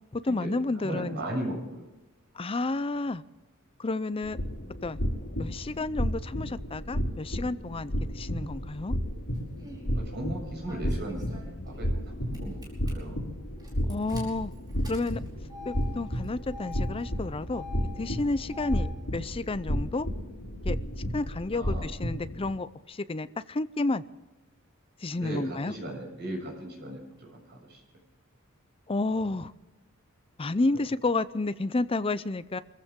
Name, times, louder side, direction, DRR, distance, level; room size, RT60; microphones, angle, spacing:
voice 1, 0.1-1.2 2.4-3.2 3.8-4.4 4.8-5.0 5.4-8.9 13.9-14.5 14.9-15.2 15.7-17.7 18.0-18.9 19.1-20.1 20.6-20.8 21.1-24.0 25.0-25.7 28.9-29.5 30.4-32.6, left 2 dB, 25° left, 0.5 m, -30 dB
voice 2, 0.8-1.9 9.9-11.3 11.6-11.9 12.3-13.2 18.7-18.9 21.5-21.9 25.2-27.8, right 1 dB, 50° right, 7.1 m, -37 dB
sound 1, 4.2-22.5, equal, 75° left, 4.8 m, -33 dB
Engine starting, 9.3-9.9 10.7-12.1 12.3-12.9 13.6-18.9, left 3 dB, 20° right, 5.0 m, -45 dB
25.5 x 15.0 x 3.7 m
head